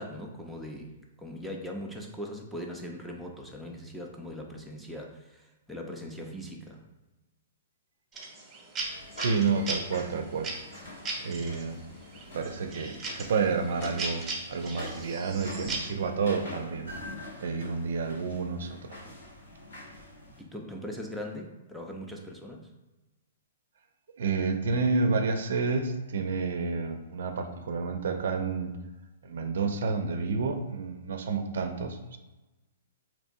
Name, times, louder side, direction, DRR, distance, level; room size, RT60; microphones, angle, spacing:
voice 1, 0.0-6.8 20.4-22.7, equal, ahead, 0 dB, 0.5 m, -40 dB
sound 1, 8.1-11.6 12.1-15.9, right 3 dB, 20° right, 0.9 m, -37 dB
sound 2, 8.8-20.4, left 1 dB, 80° left, 1.4 m, -45 dB
voice 2, 9.0-10.5 11.2-11.9 12.3-16.9 17.4-19.1 24.2-28.8 29.2-32.2, right 4 dB, 70° right, 6 dB, 0.4 m, -30 dB
4.1 x 2.9 x 2.6 m, 1.1 s
hypercardioid pair, 130°, 0 cm